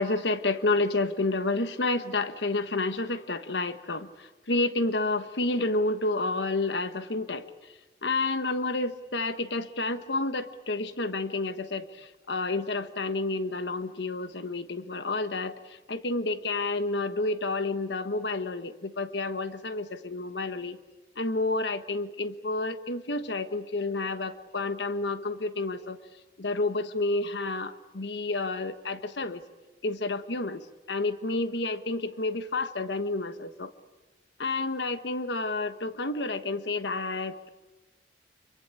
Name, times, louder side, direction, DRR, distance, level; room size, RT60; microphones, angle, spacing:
voice 1, 0.0-7.7 8.0-20.8 21.2-26.0 26.4-29.4 29.8-33.7 34.4-37.5, left 2 dB, 80° left, 11 dB, 1.3 m, -30 dB
26.5 x 23.5 x 8.8 m, 1.1 s
head